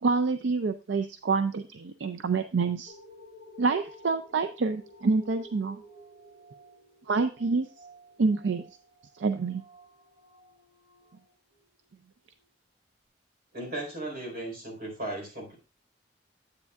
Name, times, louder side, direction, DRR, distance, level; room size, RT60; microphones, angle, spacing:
voice 1, 0.0-2.9 3.6-5.8 7.1-7.7 8.2-8.6 9.2-9.6, right 4 dB, 80° right, 9 dB, 0.5 m, -27 dB
sound 1, 2.9-11.8 12.4-12.5, equal, 35° right, 1.5 m, -52 dB
voice 2, 13.5-15.5, right 1 dB, 55° right, 0 dB, 4.2 m, -36 dB
9.6 x 8.2 x 2.4 m, 0.33 s
head